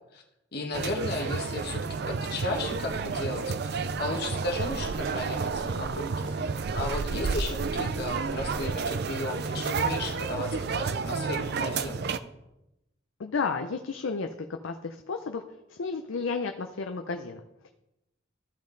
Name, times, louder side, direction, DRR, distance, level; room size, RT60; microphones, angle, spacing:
voice 1, 0.5-12.1, left 2 dB, 55° left, 0 dB, 1.3 m, -35 dB
sound 1, 0.7-12.2, right 5 dB, 55° right, 0.4 m, -31 dB
sound 2, 2.3-9.1, right 1 dB, 90° right, 1.7 m, -51 dB
voice 2, 13.2-15.4 15.7-17.7, left 4 dB, 85° left, 5 dB, 0.6 m, -32 dB
14.0 x 5.3 x 3.9 m, 0.91 s
head